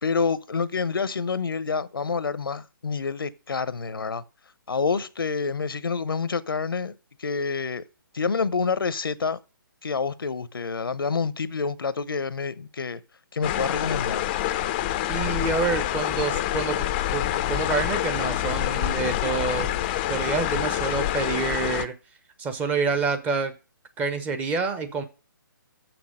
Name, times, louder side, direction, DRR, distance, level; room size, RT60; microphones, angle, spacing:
voice 1, 0.0-4.2 4.7-7.8 8.1-9.4 9.8-13.0 13.3-14.3, left 5 dB, 80° left, 0.7 m, -28 dB
sound 1, 13.4-21.9, left 13 dB, 25° left, 0.5 m, -27 dB
voice 2, 15.1-19.8 20.1-21.9 22.4-23.5 24.0-25.1, right 4 dB, 15° right, 0.7 m, -27 dB
6.9 x 6.1 x 6.5 m
hypercardioid pair, 145°, 12 cm